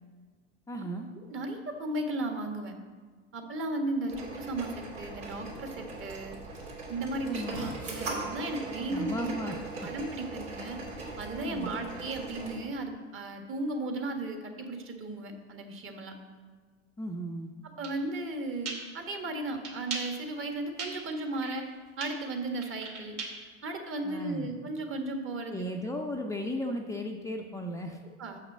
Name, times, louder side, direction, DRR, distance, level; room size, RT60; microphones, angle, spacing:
voice 1, 0.7-1.1 7.3-7.6 8.9-9.6 11.4-11.8 17.0-17.5 24.0-24.5 25.5-28.0, equal, 10° left, 1 dB, 0.5 m, -35 dB
voice 2, 1.3-2.7 3.3-6.4 6.9-9.5 9.8-10.8 11.2-16.1 17.6-21.6 22.0-23.2 23.6-25.7 28.0-28.4, right 2 dB, 35° right, 4 dB, 1.5 m, -35 dB
sound 1, 4.1-12.6, right 2 dB, 80° right, 3.0 m, -40 dB
sound 2, 17.8-17.9 18.7-18.8 19.6-20.0 20.8-20.9 21.2-21.7 22.0-23.5, right 5 dB, 65° right, 2.6 m, -37 dB
6.5 x 5.8 x 7.4 m, 1.5 s
hypercardioid pair, 90°, 37 cm